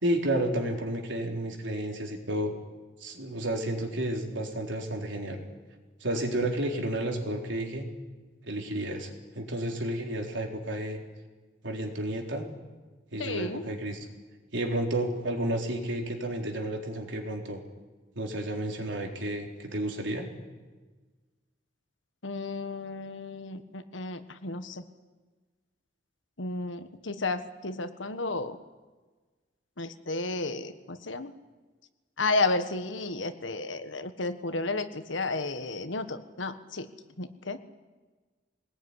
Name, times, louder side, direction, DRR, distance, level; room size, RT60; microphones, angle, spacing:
voice 1, 0.0-2.5 3.0-5.4 6.0-7.9 8.5-11.0 11.6-12.5 13.1-14.1 14.5-17.6 18.2-20.3, right 1 dB, 80° right, 2 dB, 3.8 m, -31 dB
voice 2, 13.2-13.7 22.2-24.8 26.4-28.6 29.8-31.3 32.2-36.9 37.2-37.6, left 3 dB, 85° left, 10 dB, 1.5 m, -32 dB
23.0 x 19.5 x 9.8 m, 1.3 s
head